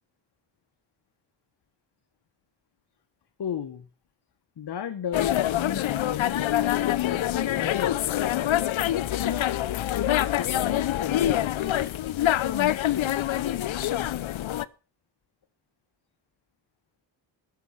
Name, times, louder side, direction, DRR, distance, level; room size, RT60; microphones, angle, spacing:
voice 1, 3.4-3.9 4.6-8.6 9.2-9.7 10.0-11.9 12.2-13.2, left 8 dB, 55° left, 9 dB, 1.5 m, -35 dB
sound 1, 5.1-14.6, left 13 dB, 70° left, 1.0 m, -25 dB
19.5 x 7.2 x 6.0 m, 0.35 s
cardioid pair, 95°, 49 cm